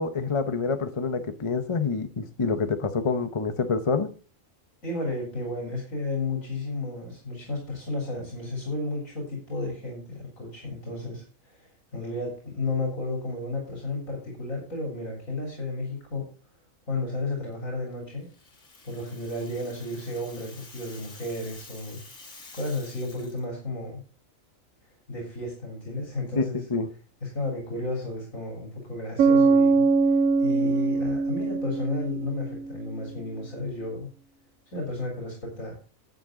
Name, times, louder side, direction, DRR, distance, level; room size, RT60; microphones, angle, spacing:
voice 1, 0.0-4.1 26.3-26.9, left 4 dB, 25° left, 0.8 m, -27 dB
voice 2, 4.8-11.2 11.5-11.6 11.9-16.2 16.9-18.3 18.8-22.0 22.5-24.0 25.1-26.6 27.2-29.9 30.4-34.1 34.7-35.7, left 2 dB, 75° left, 3.8 m, -32 dB
Rattle (instrument), 18.2-23.4, left 3 dB, 60° left, 2.4 m, -49 dB
Bass guitar, 29.2-32.8, right 4 dB, 80° right, 1.1 m, -22 dB
10.5 x 8.9 x 3.8 m
omnidirectional pair, 1.4 m